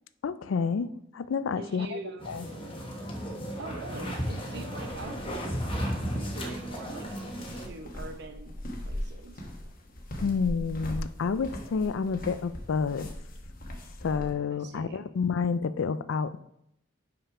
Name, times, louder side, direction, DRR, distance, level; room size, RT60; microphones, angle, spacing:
voice 1, 0.2-2.0 2.3-2.5 10.2-13.1 14.0-16.4, left 5 dB, 90° left, 14 dB, 0.4 m, -29 dB
voice 2, 1.6-2.3 3.6-7.1 7.4-8.6 8.8-9.4 14.5-15.1, right 2 dB, 60° right, 6 dB, 0.9 m, -43 dB
sound 1, 2.2-7.7, equal, 25° left, 1.1 m, -34 dB
sound 2, 4.8-14.3, equal, 45° left, 1.1 m, -40 dB
5.6 x 5.4 x 4.8 m, 0.77 s
head